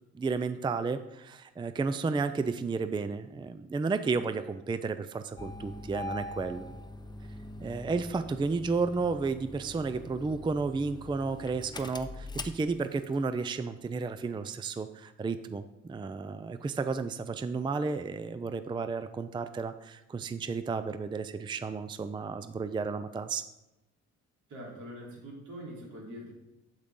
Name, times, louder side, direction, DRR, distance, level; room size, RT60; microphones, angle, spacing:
voice 1, 0.1-6.6 7.6-23.4, right 4 dB, 15° right, 11 dB, 0.4 m, -32 dB
Engine starting, 5.4-13.2, left 2 dB, 15° left, 0.7 m, -43 dB
voice 2, 24.5-26.3, equal, 75° right, -3 dB, 3.4 m, -43 dB
8.4 x 8.0 x 3.7 m, 0.94 s
cardioid pair, 90°, 30 cm